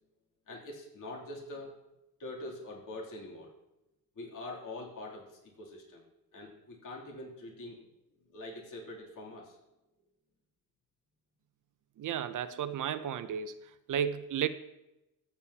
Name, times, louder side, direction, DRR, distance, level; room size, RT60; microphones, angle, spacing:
voice 1, 0.5-1.8 2.2-3.5 4.1-6.0 6.3-7.8 8.2-9.6, left 2 dB, 55° left, -3 dB, 3.0 m, -44 dB
voice 2, 12.0-13.6 13.9-14.5, right 9 dB, 55° right, 12 dB, 0.6 m, -33 dB
14.0 x 8.3 x 2.9 m, 0.93 s
cardioid pair, 85°, 38 cm